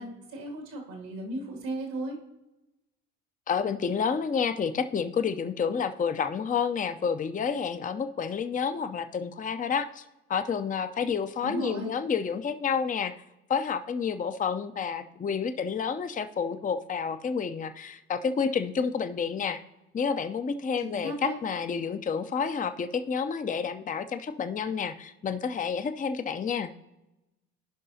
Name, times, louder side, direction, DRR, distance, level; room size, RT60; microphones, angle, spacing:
voice 1, 0.0-2.2 11.4-11.9 20.8-21.4, right 1 dB, 85° right, -1 dB, 2.4 m, -35 dB
voice 2, 3.5-10.0 10.3-13.1 13.5-19.6 19.9-26.7, left 6 dB, 25° left, 9 dB, 0.5 m, -29 dB
16.0 x 5.4 x 2.8 m, 0.96 s
hypercardioid pair, 60°, 34 cm